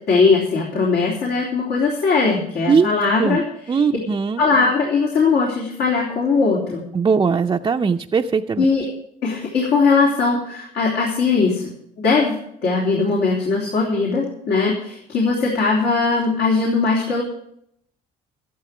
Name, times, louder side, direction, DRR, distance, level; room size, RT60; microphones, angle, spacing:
voice 1, 0.1-3.4 4.4-6.8 8.6-8.9 9.2-11.7 12.0-17.2, left 4 dB, 75° left, -3 dB, 3.5 m, -19 dB
voice 2, 3.7-4.4 6.9-8.7, right 5 dB, 25° right, 2 dB, 0.5 m, -19 dB
13.5 x 11.5 x 4.9 m, 0.70 s
cardioid pair, 110°, 17 cm